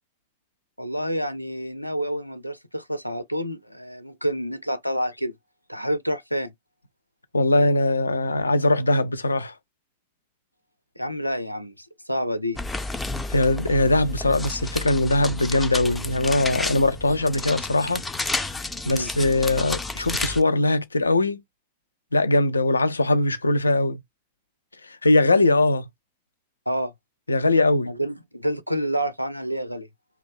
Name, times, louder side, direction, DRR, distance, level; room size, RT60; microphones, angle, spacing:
voice 1, 0.8-5.3 5.7-6.5 11.0-12.6 18.8-19.1 26.7-26.9 27.9-29.9, equal, 90° right, 0.4 m, -28 dB
voice 2, 7.3-9.5 13.3-18.0 18.9-21.4 22.1-24.0 24.8-25.8 27.3-27.9, left 2 dB, 80° left, 0.3 m, -21 dB
sound 1, 12.6-20.4, left 2 dB, 10° left, 0.4 m, -31 dB
2.6 x 2.2 x 3.4 m
figure-of-eight pair, 90°, 0 cm